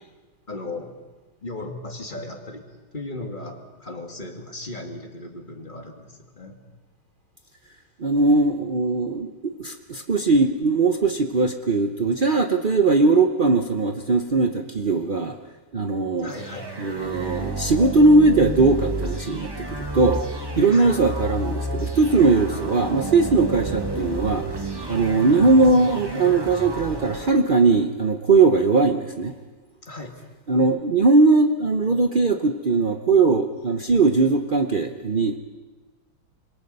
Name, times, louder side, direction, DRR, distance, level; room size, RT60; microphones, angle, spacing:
voice 1, 0.5-0.9 1.4-2.6 2.9-6.6 16.2-16.7 20.7-20.9 29.8-30.2, left 2 dB, 25° left, 2 dB, 2.2 m, -36 dB
voice 2, 8.0-15.4 15.7-16.3 16.8-20.2 20.5-24.6 24.9-29.3 30.5-35.4, right 3 dB, 80° right, 5 dB, 0.4 m, -19 dB
sound 1, 16.3-27.3, right 2 dB, 15° right, 1.1 m, -31 dB
26.5 x 22.0 x 5.5 m, 1.3 s
omnidirectional pair, 2.2 m